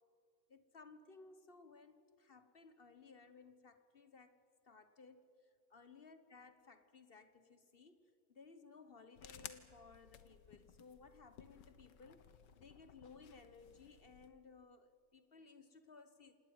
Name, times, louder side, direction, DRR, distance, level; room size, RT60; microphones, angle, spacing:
voice 1, 0.5-4.4 4.6-16.4, left 4 dB, 40° left, 11 dB, 0.9 m, -60 dB
sound 1, 9.1-14.3, left 8 dB, 65° left, 1.7 m, -58 dB
27.0 x 19.0 x 9.4 m, 2.5 s
omnidirectional pair, 2.1 m